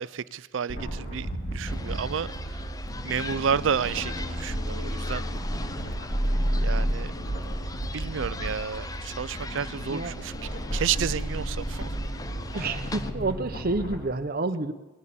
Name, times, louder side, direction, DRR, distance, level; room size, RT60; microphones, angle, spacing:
voice 1, 0.0-2.7 3.0-5.2 6.6-7.1 7.9-10.3 10.7-12.0, right 7 dB, 70° right, 0.4 m, -31 dB
sound 1, 0.7-14.0, right 1 dB, 50° left, 2.9 m, -32 dB
sound 2, 1.7-13.1, left 3 dB, 20° left, 0.5 m, -41 dB
voice 2, 12.5-14.7, right 2 dB, 50° right, 0.8 m, -29 dB
19.0 x 11.0 x 6.9 m
head